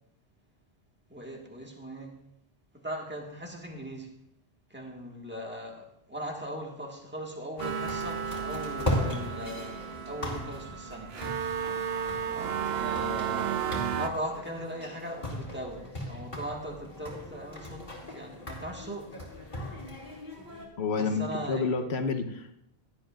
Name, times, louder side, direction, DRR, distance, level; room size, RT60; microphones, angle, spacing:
voice 1, 1.1-2.2 2.7-4.1 4.7-11.2 12.7-19.2 20.9-21.7, right 1 dB, 10° right, 0 dB, 1.7 m, -39 dB
sound 1, 7.6-20.7, left 1 dB, 45° left, 2.6 m, -38 dB
sound 2, 7.6-14.1, right 8 dB, 75° right, 0.9 m, -33 dB
voice 2, 20.8-22.5, left 4 dB, 80° left, 7 dB, 1.2 m, -29 dB
17.0 x 11.5 x 2.5 m, 0.75 s
omnidirectional pair, 1.1 m